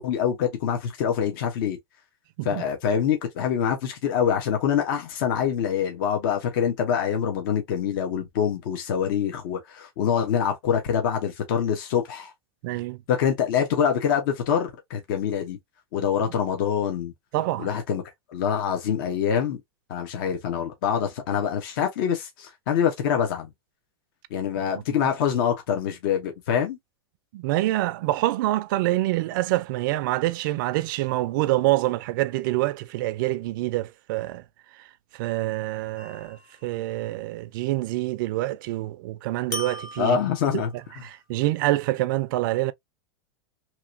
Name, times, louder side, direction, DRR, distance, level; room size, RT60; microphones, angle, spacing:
voice 1, 0.0-1.8 2.4-12.3 13.1-15.6 15.9-17.1 17.6-18.0 18.3-19.6 19.9-23.5 24.3-26.8 40.0-40.7, left 8 dB, 55° left, 0.9 m, -25 dB
voice 2, 12.6-13.0 17.3-17.7 27.3-34.4 35.1-40.2 41.0-42.7, right 17 dB, 50° right, 0.4 m, -26 dB
sound 1, 36.0-36.6 39.5-40.9, left 1 dB, 25° left, 1.2 m, -38 dB
3.0 x 2.9 x 2.5 m
supercardioid pair, 150°, 14 cm